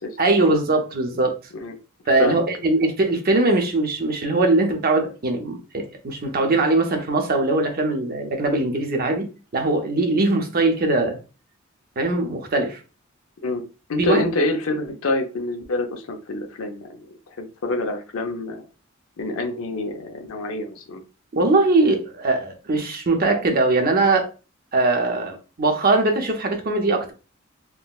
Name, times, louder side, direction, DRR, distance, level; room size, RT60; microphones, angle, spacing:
voice 1, 0.2-1.3 2.1-11.2 12.0-12.8 14.0-14.2 21.3-24.3 24.7-27.1, right 2 dB, 45° right, 0.6 m, -21 dB
voice 2, 13.9-17.0 17.4-18.6 19.2-21.0, left 2 dB, 80° left, 0.6 m, -26 dB
3.7 x 2.1 x 2.3 m
head